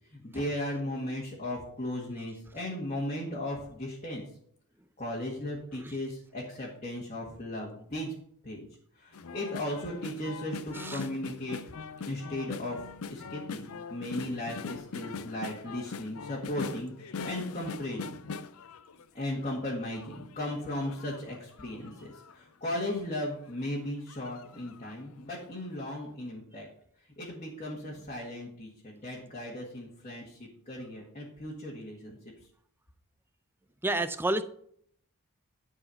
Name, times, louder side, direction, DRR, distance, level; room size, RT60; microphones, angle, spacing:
voice 1, 0.1-4.3 5.0-8.1 8.4-8.7 9.0-11.6 12.0-18.2 19.1-26.7 27.2-32.2, left 1 dB, 30° left, -4 dB, 1.8 m, -36 dB
sound 1, 9.1-19.5 19.9-22.3 22.9-23.0 23.3-23.5 24.1-25.0 25.4-25.5, left 5 dB, 70° left, 0.5 m, -42 dB
voice 2, 10.7-11.0 33.8-34.4, right 2 dB, 10° right, 10 dB, 0.5 m, -30 dB
11.0 x 4.7 x 5.8 m, 0.66 s
head